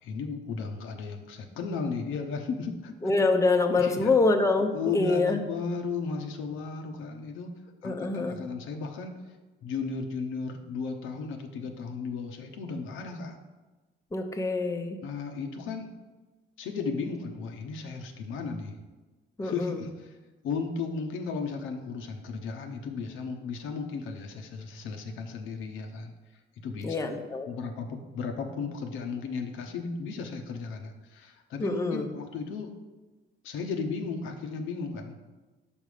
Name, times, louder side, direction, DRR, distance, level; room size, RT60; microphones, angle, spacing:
voice 1, 0.0-2.9 3.7-4.1 4.7-7.5 7.8-9.2 9.6-13.4 15.0-15.9 16.6-18.8 19.4-20.1 20.4-26.1 26.6-27.2 27.5-32.7 33.4-35.2, left 4 dB, 90° left, 4 dB, 0.8 m, -35 dB
voice 2, 3.0-5.4 7.8-8.4 14.1-15.0 19.4-19.8 26.8-27.5 31.6-32.1, left 3 dB, 15° left, 4 dB, 0.7 m, -25 dB
5.4 x 5.0 x 4.9 m, 1.2 s
cardioid pair, 90°, 20 cm